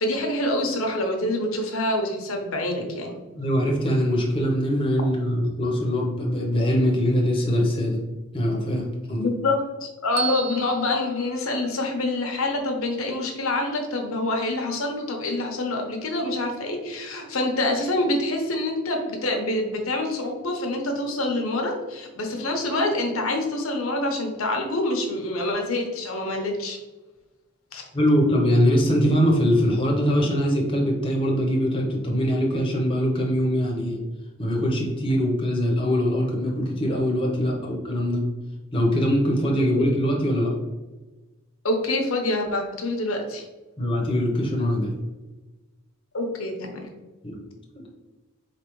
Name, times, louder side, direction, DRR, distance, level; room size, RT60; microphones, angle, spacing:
voice 1, 0.0-3.1 9.1-9.6 10.0-26.8 27.7-27.8 39.8-39.9 41.6-43.4 46.1-46.9, left 2 dB, 70° left, 2 dB, 0.9 m, -26 dB
voice 2, 3.4-8.0 8.3-9.3 27.9-34.0 34.4-38.2 38.7-40.5 43.8-44.9 47.2-47.4 47.7-47.9, equal, 25° left, -1 dB, 0.9 m, -22 dB
Bell, 10.2-12.3, right 9 dB, 55° right, 0.4 m, -35 dB
4.5 x 3.3 x 3.1 m, 1.2 s
head